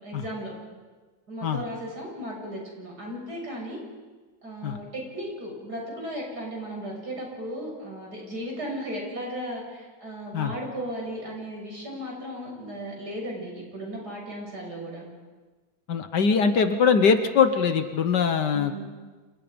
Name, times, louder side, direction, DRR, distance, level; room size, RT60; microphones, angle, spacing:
voice 1, 0.0-0.5 1.3-3.8 4.4-15.1 18.5-18.8, equal, 55° right, -1 dB, 7.6 m, -36 dB
voice 2, 15.9-18.8, left 6 dB, 65° left, 9 dB, 1.7 m, -22 dB
29.5 x 28.5 x 5.2 m, 1.3 s
omnidirectional pair, 2.1 m